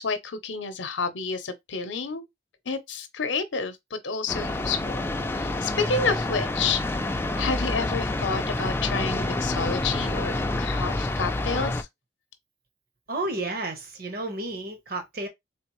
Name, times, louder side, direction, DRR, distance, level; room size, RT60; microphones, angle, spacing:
voice 1, 0.0-2.3 2.7-5.1 5.3-7.0 7.4-11.9, left 4 dB, 75° left, 0.7 m, -30 dB
sound 1, 4.3-11.8, left 2 dB, 10° left, 0.4 m, -28 dB
voice 2, 13.1-15.3, right 2 dB, 55° right, 1.1 m, -31 dB
3.8 x 3.3 x 3.0 m
head